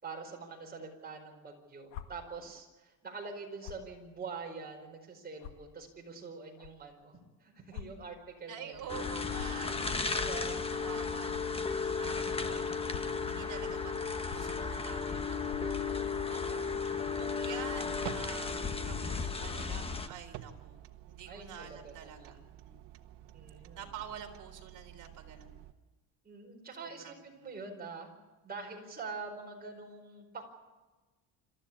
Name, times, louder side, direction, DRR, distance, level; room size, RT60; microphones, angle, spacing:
voice 1, 0.0-8.9 10.1-10.6 16.5-17.1 21.3-22.4 23.3-23.9 26.2-28.1 28.4-30.4, right 4 dB, 20° right, 1 dB, 4.8 m, -45 dB
sound 1, 1.9-2.0 3.6-3.9 4.6-4.7 5.4-5.5 6.6-6.7 7.7-7.9 8.2-8.3 9.3-9.6 11.3-11.4 12.7-13.1 14.2-14.4 15.4-15.6 16.4-16.7 17.5-17.8 18.5-18.8 19.5-19.8, left 10 dB, 90° left, 2.1 m, -46 dB
voice 2, 8.5-9.8 10.1-20.8 21.1-22.8 23.8-25.6 26.8-27.5, right 8 dB, 45° right, 3 dB, 3.7 m, -48 dB
sound 2, 8.7-25.7, right 13 dB, 70° right, 1.5 m, -52 dB
sound 3, 8.9-20.1, left 5 dB, 15° left, 1.0 m, -34 dB
27.0 x 14.0 x 8.6 m, 1.2 s
cardioid pair, 145°, 43 cm